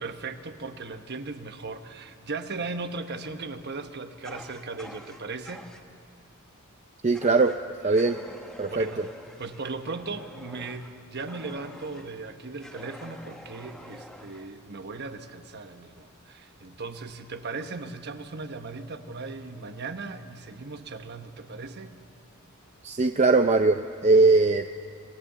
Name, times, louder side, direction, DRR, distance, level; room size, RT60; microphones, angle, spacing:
voice 1, 0.0-5.7 8.7-9.1 9.4-21.9, right 3 dB, 50° right, 8 dB, 1.2 m, -37 dB
Fire, 4.2-5.8 7.1-7.6 7.9-12.1 12.6-14.5, equal, ahead, 1.5 m, -46 dB
voice 2, 7.0-7.5 7.8-8.2 8.6-9.1 22.8-24.7, right 3 dB, 30° right, 7 dB, 0.5 m, -21 dB
26.0 x 18.0 x 6.8 m, 2.5 s
head